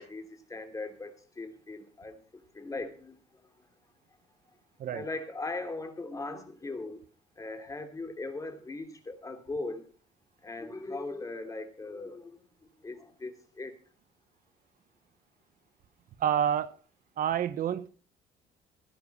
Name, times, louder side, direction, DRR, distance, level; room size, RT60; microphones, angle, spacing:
voice 1, 0.0-2.2 2.5-3.2 4.9-7.0 7.4-9.8 10.4-12.4 12.8-13.7, left 2 dB, 20° left, 2.9 m, -39 dB
voice 2, 16.2-16.7 17.2-17.9, right 9 dB, 55° right, 1.1 m, -28 dB
17.0 x 10.5 x 4.2 m
cardioid pair, 110°, 17 cm